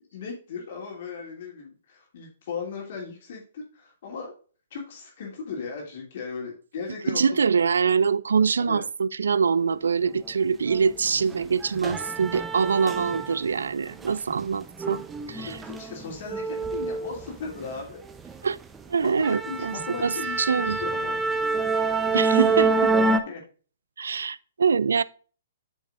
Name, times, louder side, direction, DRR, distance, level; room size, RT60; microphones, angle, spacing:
voice 1, 0.1-4.3 4.7-7.2 8.6-8.8 15.3-18.0 19.0-21.2 23.0-23.4, left 5 dB, 55° left, 2.9 m, -37 dB
voice 2, 7.1-15.6 18.4-18.6 18.9-20.8 22.1-22.9 24.0-25.0, right 6 dB, 70° right, 0.4 m, -24 dB
sound 1, 10.7-10.8 11.2-13.6 13.9-17.7 18.1-18.4 18.8-18.9 19.2-23.2, right 3 dB, 10° right, 0.8 m, -27 dB
8.4 x 6.4 x 2.6 m
figure-of-eight pair, 125°, 0 cm